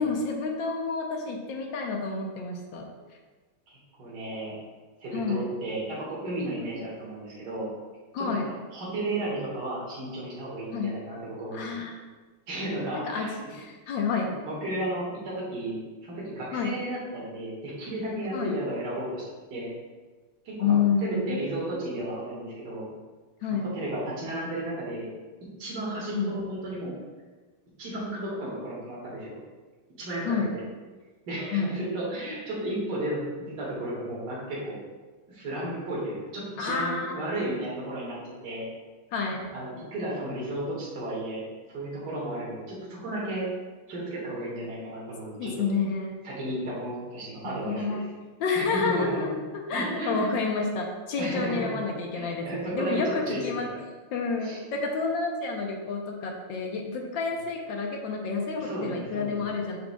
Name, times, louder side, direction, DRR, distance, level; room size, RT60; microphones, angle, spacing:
voice 1, 0.0-2.9 5.1-5.4 8.1-8.5 10.7-11.0 11.5-11.9 12.9-14.3 16.5-16.7 18.3-18.5 20.6-21.4 23.4-23.7 26.1-26.3 30.3-30.6 31.5-31.8 36.6-37.1 39.1-39.5 45.4-46.2 47.4-48.0 48.4-49.4 49.7-53.7 54.1-59.8, left 4 dB, 70° left, 1 dB, 1.4 m, -29 dB
voice 2, 3.7-4.5 5.0-7.7 8.2-8.3 8.7-11.8 12.5-13.3 14.2-15.8 16.0-19.2 19.5-19.7 20.4-20.8 21.0-22.9 23.5-25.1 25.6-26.9 27.8-29.4 30.0-30.6 31.3-34.8 35.3-38.7 39.5-41.4 41.7-43.5 43.9-45.6 46.2-48.0 48.5-49.3 49.7-50.3 51.2-51.7 52.1-53.8 54.4-54.6 58.6-59.7, right 1 dB, 55° right, -6 dB, 2.2 m, -33 dB
7.0 x 6.4 x 2.3 m, 1.3 s
omnidirectional pair, 2.3 m